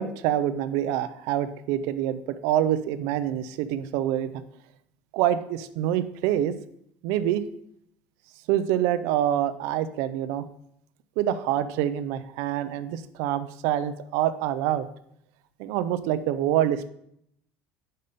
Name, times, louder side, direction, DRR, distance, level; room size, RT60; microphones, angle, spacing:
voice 1, 0.0-4.4 5.1-6.5 7.0-7.4 8.5-10.5 11.2-14.9 15.6-16.9, right 11 dB, 75° right, 12 dB, 0.5 m, -26 dB
5.5 x 5.2 x 6.6 m, 0.72 s
cardioid pair, 160°, 5 cm